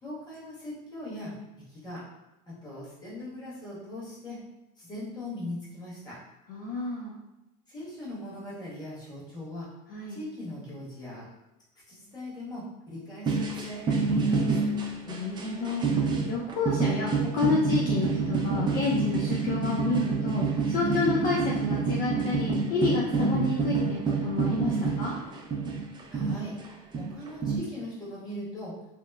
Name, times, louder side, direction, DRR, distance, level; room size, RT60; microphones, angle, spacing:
voice 1, 0.0-2.0 2.5-4.4 4.8-6.2 7.7-9.7 10.1-11.3 11.9-14.7 26.1-26.6 26.9-28.8, left 1 dB, 20° left, -8 dB, 1.4 m, -40 dB
voice 2, 6.5-7.1 9.9-10.2 15.1-25.1, left 3 dB, 50° left, -4 dB, 0.5 m, -29 dB
sound 1, 13.3-26.7 26.9-27.6, right 4 dB, 25° right, 0.4 m, -28 dB
2.8 x 2.1 x 2.3 m, 0.96 s
supercardioid pair, 110°, 19 cm